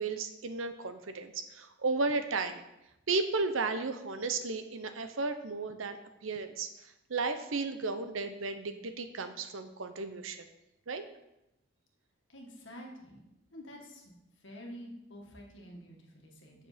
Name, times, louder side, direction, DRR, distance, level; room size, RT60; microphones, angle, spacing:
voice 1, 0.0-2.6 3.1-6.0 6.2-10.4 10.9-11.0, right 3 dB, 80° right, 8 dB, 0.8 m, -34 dB
voice 2, 12.3-13.2 13.5-14.2 14.4-16.7, equal, 70° left, 0 dB, 1.8 m, -48 dB
8.0 x 6.7 x 5.1 m, 0.90 s
head